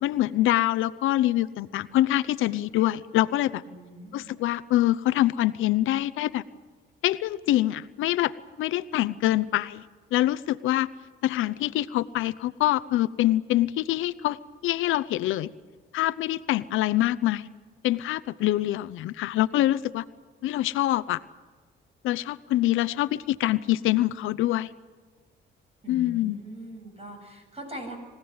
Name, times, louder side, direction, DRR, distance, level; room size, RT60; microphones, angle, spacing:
voice 1, 0.0-3.6 4.1-6.4 7.0-8.3 8.6-9.8 10.1-10.9 11.2-14.4 14.6-15.5 15.9-17.5 17.8-20.1 20.4-21.2 22.0-24.7 25.9-26.4, left 15 dB, 85° left, 15 dB, 0.8 m, -25 dB
voice 2, 3.7-4.4 25.8-28.0, right 1 dB, 30° right, 4 dB, 7.7 m, -42 dB
23.5 x 17.0 x 9.6 m, 1.4 s
cardioid pair, 90°, 20 cm